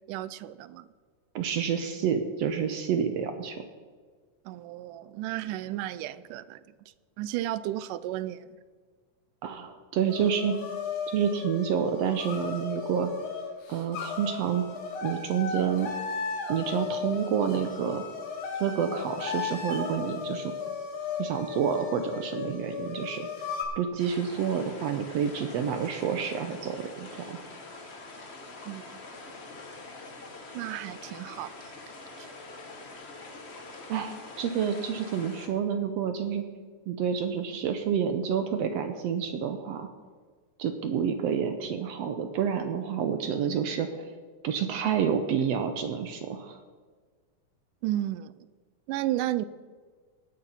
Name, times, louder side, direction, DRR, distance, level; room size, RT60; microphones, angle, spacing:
voice 1, 0.1-0.9 4.5-6.6 7.2-8.5 28.7-28.9 30.5-31.5 32.2-32.3 47.8-48.4 48.9-49.5, right 14 dB, 90° right, 16 dB, 2.1 m, -33 dB
voice 2, 1.3-3.6 9.4-10.6 11.1-13.1 13.7-14.6 15.0-15.9 16.5-18.0 18.6-20.5 21.2-23.3 23.8-27.4 33.9-36.4 36.9-39.9 40.6-44.1 44.4-46.6, right 7 dB, 70° right, 7 dB, 1.6 m, -29 dB
sound 1, 10.1-23.6, left 5 dB, 70° left, 3.0 m, -35 dB
sound 2, 24.0-35.5, left 3 dB, 90° left, 0.5 m, -45 dB
18.0 x 6.8 x 5.6 m, 1.5 s
omnidirectional pair, 3.6 m